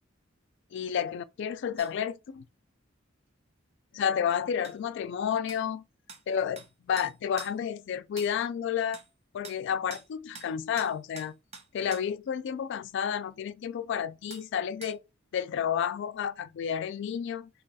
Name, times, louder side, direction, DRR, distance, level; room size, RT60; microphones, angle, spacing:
voice 1, 0.7-2.4 3.9-5.8 6.3-9.0 9.3-11.4 11.7-15.0 15.3-17.5, left 8 dB, 65° left, 0.3 m, -31 dB
sound 1, 1.8-1.9 4.6-4.8 5.5-5.6 6.1-6.2 6.6-6.7 7.0-7.6 8.2-8.3 8.9-9.1 9.4-9.6 9.9-10.1 10.4-10.5 10.8-12.1 14.3-14.5 14.8-15.0, right 4 dB, 35° right, 0.6 m, -45 dB
2.8 x 2.3 x 4.0 m
head